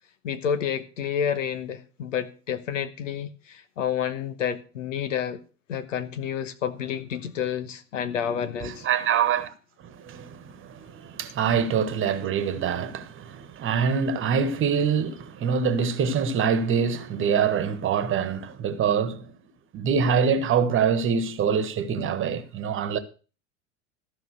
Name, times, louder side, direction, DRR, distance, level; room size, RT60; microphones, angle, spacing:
voice 1, 0.2-5.4 5.7-8.9, left 8 dB, 75° left, 1.2 m, -29 dB
voice 2, 8.6-9.5 9.8-19.3 19.7-23.0, right 6 dB, 30° right, 1.4 m, -25 dB
14.0 x 5.6 x 6.6 m
figure-of-eight pair, 85°, 39 cm